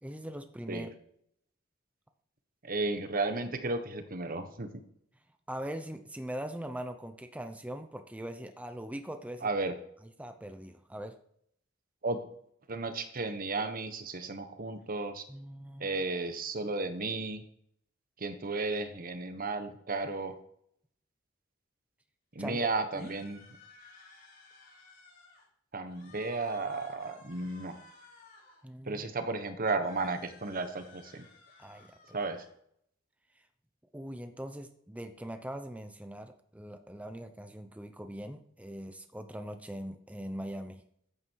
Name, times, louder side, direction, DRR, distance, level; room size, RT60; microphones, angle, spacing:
voice 1, 0.0-0.9 5.5-9.5 10.2-11.1 15.3-15.9 22.4-22.7 22.9-23.1 28.6-29.1 31.6-32.2 33.4-33.5 33.9-40.8, right 1 dB, 5° right, 7 dB, 0.8 m, -41 dB
voice 2, 2.6-4.8 9.4-9.7 12.0-12.2 12.7-15.2 15.8-17.4 18.2-20.3 22.3-23.4 25.7-27.8 28.9-31.3 32.1-32.4, right 3 dB, 45° right, 8 dB, 1.3 m, -34 dB
sound 1, 22.9-25.5 25.8-28.6 29.8-32.5, left 3 dB, 45° left, 4.1 m, -56 dB
14.5 x 9.7 x 4.7 m, 0.70 s
head